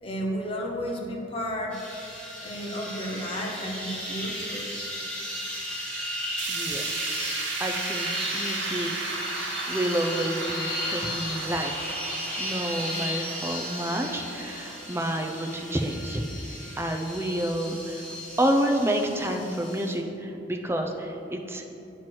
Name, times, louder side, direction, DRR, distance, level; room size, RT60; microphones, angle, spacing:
voice 1, 0.0-1.8 2.4-4.7, equal, 30° left, -1 dB, 0.7 m, -32 dB
sound 1, 1.7-19.9, equal, 5° left, 1.7 m, -35 dB
sound 2, 6.4-16.5 16.9-17.0 17.4-17.5 18.4-18.5, right 3 dB, 85° right, 0.8 m, -36 dB
voice 2, 6.5-7.1 7.6-8.1 8.3-9.4 9.7-12.0 12.4-16.2 16.8-18.0 18.4-21.8, right 1 dB, 15° right, 3 dB, 0.4 m, -29 dB
9.1 x 3.1 x 5.9 m, 2.8 s
head